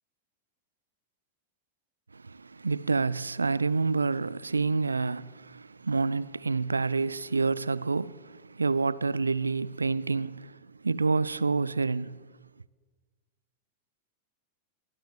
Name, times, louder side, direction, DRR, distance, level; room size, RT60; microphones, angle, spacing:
voice 1, 2.1-12.2, right 4 dB, 80° right, 0.6 m, -28 dB
23.0 x 18.5 x 7.5 m
figure-of-eight pair, 90°, 0 cm